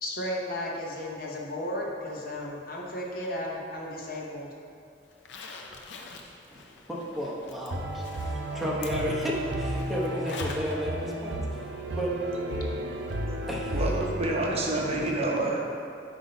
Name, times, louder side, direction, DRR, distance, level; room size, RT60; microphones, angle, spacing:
voice 1, 0.0-4.5, left 1 dB, 55° left, -2 dB, 0.9 m, -34 dB
Zipper (clothing), 5.1-10.8 11.1-11.2 13.1-13.2 13.6-13.7, left 3 dB, 85° left, 0.6 m, -45 dB
voice 2, 6.9-7.8 8.2-11.6 11.9-12.1 13.5-14.1, equal, ahead, -5 dB, 0.9 m, -33 dB
sound 1, 7.7-14.9, right 1 dB, 75° right, 0.6 m, -33 dB
voice 3, 13.7-15.6, right 2 dB, 35° right, -2 dB, 0.7 m, -28 dB
8.1 x 2.7 x 5.3 m, 2.5 s
head